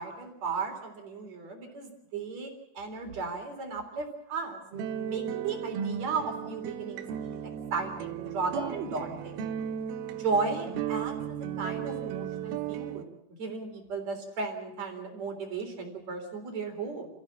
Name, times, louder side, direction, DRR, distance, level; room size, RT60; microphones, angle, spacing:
voice 1, 0.0-4.6 5.1-9.4 10.1-13.1 13.4-17.1, right 4 dB, 45° right, 4 dB, 4.7 m, -35 dB
sound 1, 4.7-13.1, right 9 dB, 75° right, 2.8 m, -35 dB
29.5 x 15.0 x 7.4 m, 0.81 s
omnidirectional pair, 4.7 m